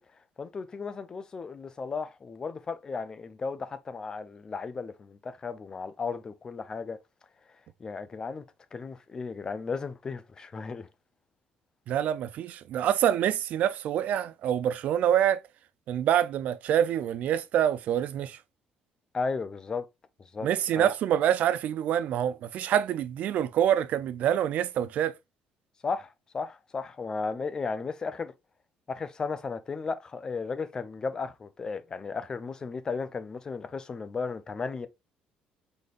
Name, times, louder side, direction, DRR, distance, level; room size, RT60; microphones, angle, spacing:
voice 1, 0.4-7.0 7.8-8.4 8.7-10.9 19.1-19.9 20.3-20.5 20.8-20.9 25.8-28.3 28.9-34.9, left 4 dB, 25° left, 0.4 m, -35 dB
voice 2, 11.9-15.4 15.9-18.4 20.4-25.1, right 10 dB, 55° right, 0.4 m, -26 dB
5.0 x 4.1 x 2.5 m
cardioid pair, 150°, 3 cm